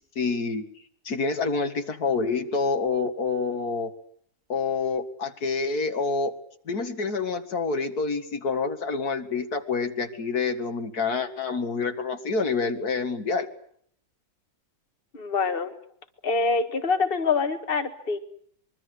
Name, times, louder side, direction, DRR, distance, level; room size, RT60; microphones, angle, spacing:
voice 1, 0.2-0.6 1.1-3.9 4.5-6.3 6.7-13.5, left 4 dB, 90° left, 7 dB, 2.5 m, -27 dB
voice 2, 15.1-15.7 16.2-18.2, left 4 dB, 40° left, 7 dB, 2.0 m, -25 dB
25.0 x 23.0 x 8.1 m, 0.64 s
omnidirectional pair, 1.6 m